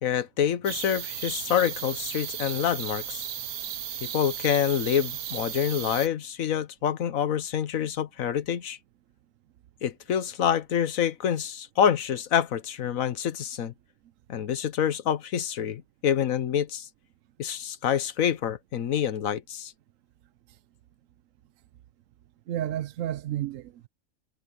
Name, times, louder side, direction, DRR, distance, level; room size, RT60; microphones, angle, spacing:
voice 1, 0.0-3.3 4.0-8.8 9.8-13.7 14.3-16.9 17.4-19.7, left 9 dB, 70° left, 1.4 m, -27 dB
sound 1, 0.6-6.1, right 10 dB, 85° right, 1.4 m, -35 dB
voice 2, 22.5-23.9, right 12 dB, 70° right, 1.0 m, -31 dB
omnidirectional pair, 1.5 m